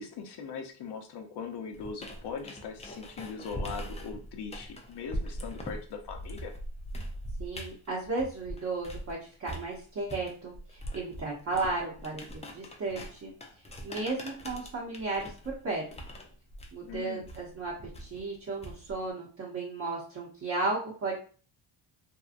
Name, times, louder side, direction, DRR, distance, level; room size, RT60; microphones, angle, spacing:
voice 1, 0.0-6.5 16.8-17.3, left 5 dB, 55° left, 5 dB, 0.7 m, -40 dB
sound 1, 1.7-9.1 9.5-19.1, equal, 15° left, 0.4 m, -42 dB
voice 2, 7.4-12.2 12.5-13.3 13.8-15.9 16.7-17.7 18.0-21.1, right 3 dB, 35° right, -5 dB, 0.9 m, -34 dB
2.8 x 2.2 x 2.5 m, 0.40 s
cardioid pair, 85°, 49 cm